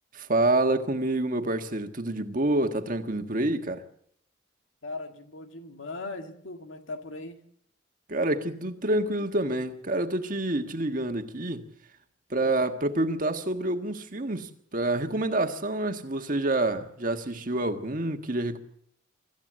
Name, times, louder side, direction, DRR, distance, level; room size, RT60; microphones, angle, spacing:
voice 1, 0.1-3.8 8.1-11.7 12.3-18.6, right 2 dB, 45° right, 1.6 m, -27 dB
voice 2, 4.8-7.4 12.4-12.6, left 2 dB, 75° left, 1.9 m, -39 dB
25.0 x 14.5 x 7.6 m
head